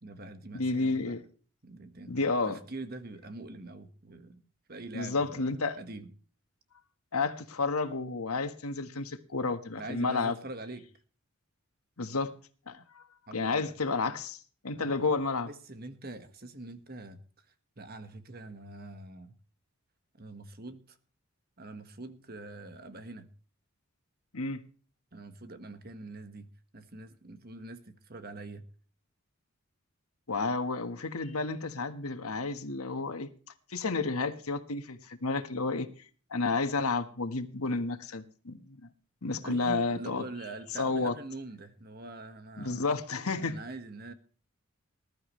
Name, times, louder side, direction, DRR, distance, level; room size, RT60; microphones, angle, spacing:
voice 1, 0.0-1.2 1.6-4.4 4.7-6.1 9.8-10.9 13.3-13.8 14.7-15.2 15.5-17.5 17.8-19.3 20.2-21.0 21.6-23.3 25.1-26.5 26.7-28.6 39.4-42.9 43.4-44.1, right 2 dB, 45° right, 9 dB, 1.5 m, -44 dB
voice 2, 0.5-1.2 2.1-2.6 4.9-5.8 7.1-10.3 12.0-12.3 12.7-13.0 13.3-15.5 24.3-24.6 30.3-33.3 33.7-35.9 36.3-38.9 39.2-40.2 40.7-41.1 42.6-43.6, left 3 dB, 85° left, 9 dB, 1.5 m, -31 dB
20.0 x 12.5 x 3.2 m, 0.40 s
head